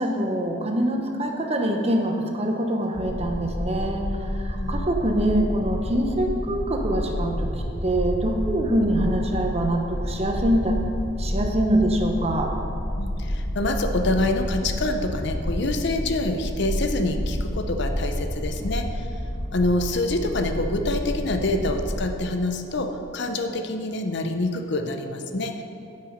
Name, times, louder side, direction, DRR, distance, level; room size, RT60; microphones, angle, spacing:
voice 1, 0.0-4.0 4.4-7.5 7.8-10.8 11.2-12.5, right 1 dB, 30° right, 3 dB, 0.9 m, -24 dB
sound 1, 2.9-22.0, equal, 35° left, 1.0 m, -29 dB
voice 2, 4.5-4.9 13.0-19.1 19.5-25.6, left 2 dB, 60° left, 5 dB, 0.7 m, -26 dB
12.5 x 5.6 x 5.1 m, 2.6 s
head